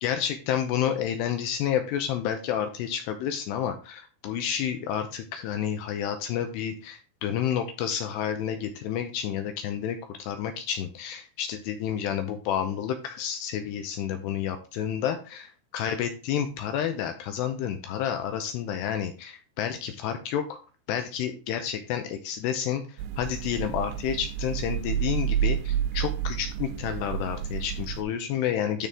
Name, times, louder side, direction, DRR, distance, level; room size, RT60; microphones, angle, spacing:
voice 1, 0.0-15.5 15.7-20.6 20.9-22.8 23.2-28.9, left 9 dB, 80° left, 7 dB, 2.5 m, -30 dB
sound 1, 23.0-28.0, right 9 dB, 85° right, 2.8 m, -30 dB
12.5 x 4.2 x 3.6 m, 0.35 s
omnidirectional pair, 5.5 m